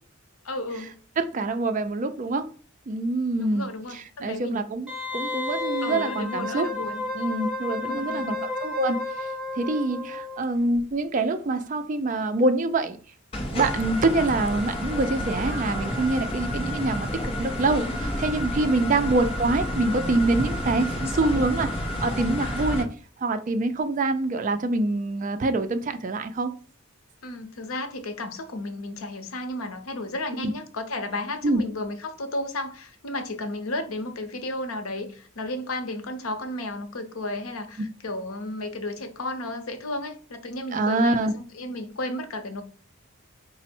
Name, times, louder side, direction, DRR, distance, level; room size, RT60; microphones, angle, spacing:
voice 1, 0.4-1.0 3.4-4.6 5.8-7.1 7.8-8.5 18.4-19.0 27.2-42.6, left 2 dB, 90° left, 0.7 m, -33 dB
voice 2, 1.2-2.5 2.9-6.7 7.1-8.4 8.6-9.0 9.6-13.0 13.5-22.9 23.2-26.5 30.4-30.5 31.4-31.6 37.8-37.9 40.7-41.3, right 2 dB, 40° right, 0.4 m, -25 dB
Wind instrument woodwind instrument, 4.9-10.4 10.7-10.8, left 2 dB, ahead, 1.3 m, -32 dB
sound 1, 13.3-22.8, left 1 dB, 30° left, 0.6 m, -30 dB
4.2 x 2.0 x 4.3 m
head